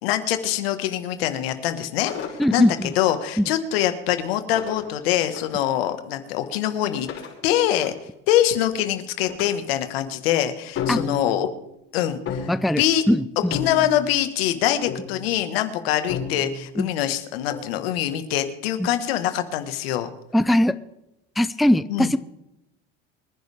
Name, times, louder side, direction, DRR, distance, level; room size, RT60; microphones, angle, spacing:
voice 1, 0.0-2.1 2.5-2.7 2.9-7.1 7.4-7.9 8.3-11.5 11.9-13.0 13.5-20.1 21.9-22.1, left 11 dB, 80° left, 9 dB, 1.6 m, -24 dB
sound 1, 2.1-3.2 4.6-5.6 6.9-8.6 9.3-9.5 9.9-10.1 10.8-11.5 12.3-12.8 13.5-14.2 14.9-15.3 16.1-16.7 17.5-17.7, left 6 dB, 50° left, 5.8 m, -32 dB
voice 2, 2.4-2.9 3.4-3.5 10.9-11.0 12.5-13.6 16.8-16.9 18.8-18.9 20.3-20.7 21.4-22.2, equal, ahead, 14 dB, 0.5 m, -20 dB
25.0 x 10.5 x 3.6 m, 0.88 s
supercardioid pair, 95°, 30 cm